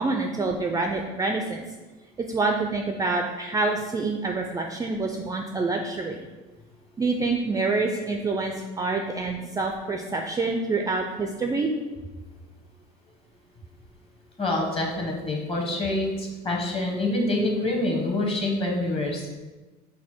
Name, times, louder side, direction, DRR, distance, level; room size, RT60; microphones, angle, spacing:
voice 1, 0.0-1.7 2.3-6.2 7.0-11.7, right 3 dB, 15° right, 3 dB, 0.3 m, -27 dB
voice 2, 14.4-19.4, left 2 dB, 25° left, 0 dB, 1.1 m, -26 dB
4.2 x 2.2 x 4.3 m, 1.2 s
hypercardioid pair, 75°, 21 cm